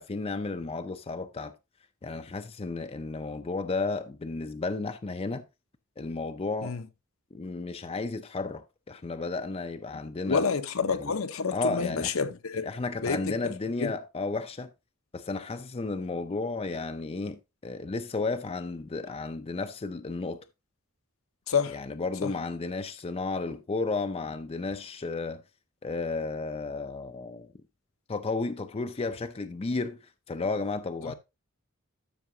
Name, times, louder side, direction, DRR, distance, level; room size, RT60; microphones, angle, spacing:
voice 1, 0.0-1.5 2.0-5.4 6.0-6.8 7.3-10.4 10.9-11.1 11.5-12.1 12.6-14.7 15.1-20.4 21.7-25.4 25.8-27.5 28.1-31.1, left 3 dB, 25° left, 0.5 m, -33 dB
voice 2, 10.3-12.7 13.0-13.5 13.8-13.9 21.5-21.8 22.2-22.3 31.0-31.1, left 5 dB, 70° left, 0.8 m, -29 dB
12.5 x 6.1 x 2.7 m
head